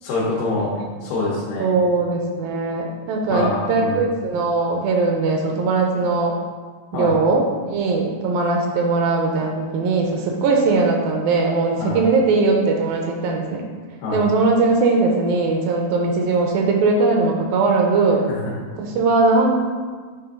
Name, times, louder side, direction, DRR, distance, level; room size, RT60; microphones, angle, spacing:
voice 1, 0.0-0.7 1.0-1.8 3.3-4.0 6.9-7.1 11.8-12.0 14.0-14.2, left 3 dB, 90° left, -7 dB, 3.1 m, -25 dB
voice 2, 1.6-6.4 6.9-13.6 14.1-18.2 18.8-19.5, right 3 dB, 80° right, 1 dB, 2.2 m, -20 dB
8.7 x 3.4 x 3.7 m, 1.5 s
omnidirectional pair, 4.4 m